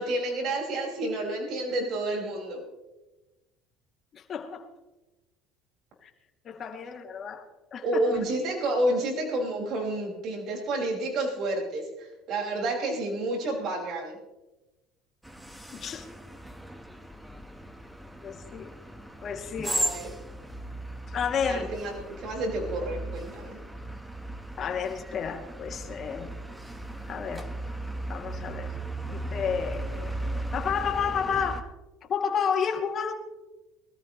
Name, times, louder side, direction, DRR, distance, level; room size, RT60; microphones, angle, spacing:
voice 1, 0.0-2.6 7.8-14.2 19.6-20.1 21.4-23.6, right 1 dB, 50° right, 5.5 m, -30 dB
voice 2, 4.1-4.7 6.0-6.1 6.4-7.4 7.7-8.0 15.7-16.1 18.2-18.7 19.2-19.8 21.1-21.7 24.6-26.3 27.1-27.5 28.1-28.7 29.1-31.7 32.1-33.1, left 7 dB, 40° left, 2.5 m, -31 dB
sound 1, 15.2-31.6, right 1 dB, 5° right, 1.3 m, -37 dB
24.0 x 14.0 x 3.1 m
cardioid pair, 125°, 0 cm